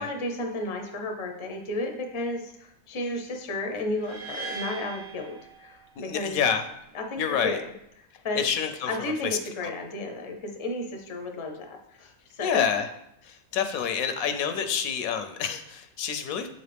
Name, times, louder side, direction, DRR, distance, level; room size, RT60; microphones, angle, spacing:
voice 1, 0.0-6.4 6.9-7.7 8.2-8.4 8.9-12.7, left 2 dB, 35° left, 3 dB, 0.5 m, -33 dB
sound 1, 4.0-6.1, right 5 dB, 80° right, 1.9 m, -40 dB
voice 2, 6.0-6.6 7.2-7.6 8.3-9.7 12.4-12.9 13.2-16.5, left 7 dB, 80° left, 8 dB, 1.0 m, -28 dB
7.1 x 4.0 x 3.4 m, 0.80 s
omnidirectional pair, 1.5 m